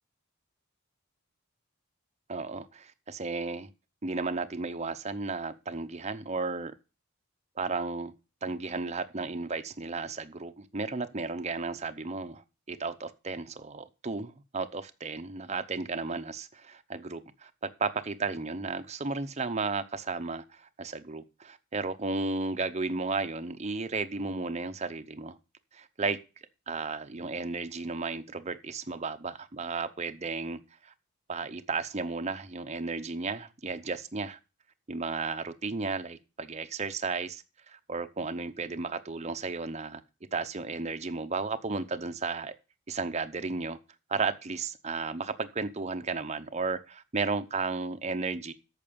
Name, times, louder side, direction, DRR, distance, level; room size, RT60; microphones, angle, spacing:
voice 1, 2.3-3.7 4.0-6.7 7.6-8.1 8.4-12.4 12.7-17.5 17.8-25.4 25.7-26.2 26.7-30.9 31.3-34.4 34.9-40.0 40.3-42.5 42.9-43.8 44.1-48.5, right 4 dB, 30° right, 0.7 m, -34 dB
8.7 x 6.6 x 6.9 m
head